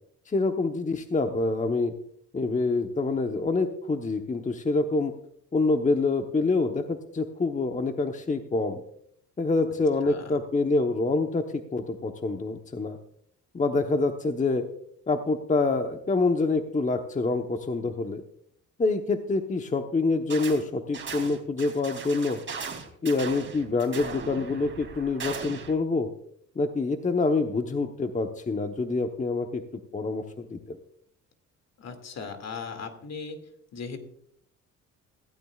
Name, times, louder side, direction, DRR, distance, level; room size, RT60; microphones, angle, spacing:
voice 1, 0.3-1.9 2.3-5.1 5.5-8.8 9.4-13.0 13.5-14.6 15.1-18.2 18.8-22.4 23.0-26.1 26.6-29.6 29.9-30.8, left 3 dB, 25° left, 5 dB, 1.0 m, -26 dB
sound 1, 20.3-20.6 20.9-25.7, right 5 dB, 40° right, 3.1 m, -38 dB
voice 2, 31.8-33.4 33.7-34.0, left 5 dB, 60° left, 7 dB, 2.4 m, -37 dB
16.0 x 15.5 x 2.4 m, 0.68 s
cardioid pair, 90°, 30 cm